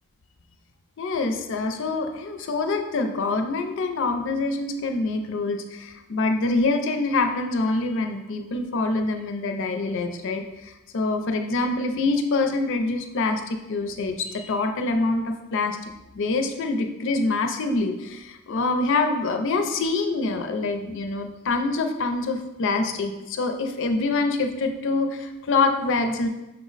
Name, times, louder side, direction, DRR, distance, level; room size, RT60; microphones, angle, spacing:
voice 1, 1.0-15.8 16.1-26.3, left 3 dB, 55° left, 6 dB, 0.4 m, -25 dB
5.6 x 2.0 x 3.9 m, 1.0 s
head